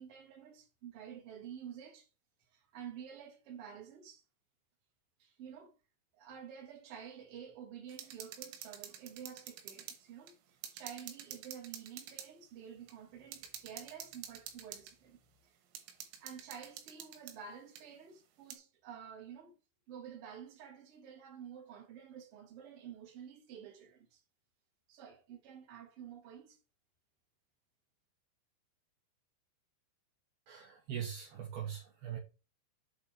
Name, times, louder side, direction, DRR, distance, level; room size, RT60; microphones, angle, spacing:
voice 1, 0.0-2.1 2.5-4.2 5.2-5.7 6.1-15.6 16.2-19.5 19.9-24.2 24.9-26.6, right 8 dB, 40° right, 2.2 m, -50 dB
sound 1, 7.9-10.0 10.3-10.4 10.6-12.3 12.9-13.0 13.3-14.9 15.8-17.4 17.8-17.9 18.5-18.6, right 8 dB, 85° right, 3.7 m, -49 dB
voice 2, 30.5-32.2, right 9 dB, 70° right, 2.6 m, -41 dB
8.4 x 4.2 x 4.4 m
omnidirectional pair, 5.5 m